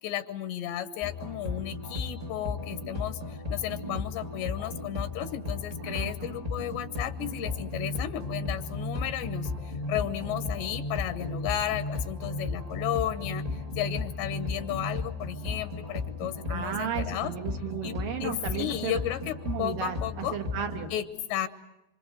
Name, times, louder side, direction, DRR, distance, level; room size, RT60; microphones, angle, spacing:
voice 1, 0.0-17.3 17.8-20.4 20.9-21.5, left 12 dB, 80° left, 11 dB, 3.1 m, -34 dB
sound 1, 1.0-21.0, left 3 dB, 40° right, 0.5 m, -35 dB
voice 2, 5.8-6.3 16.5-19.0 19.4-20.9, right 9 dB, 60° right, 5 dB, 2.9 m, -34 dB
26.5 x 25.5 x 7.8 m, 0.94 s
omnidirectional pair, 5.0 m